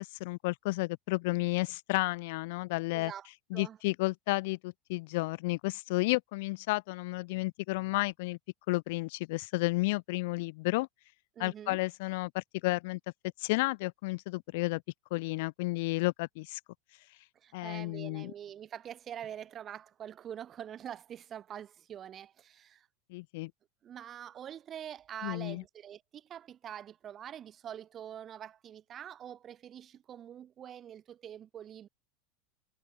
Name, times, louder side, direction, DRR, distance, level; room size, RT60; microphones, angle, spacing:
voice 1, 0.0-3.1 3.5-8.4 8.7-10.9 11.4-13.0 13.4-14.8 15.1-16.6 17.5-18.3 23.1-23.5 25.2-25.6, left 23 dB, 70° left, 0.5 m, -32 dB
voice 2, 2.9-3.3 3.5-3.8 11.4-11.8 17.4-22.9 23.8-31.9, right 10 dB, 35° right, 2.4 m, -45 dB
hypercardioid pair, 110°, 0 cm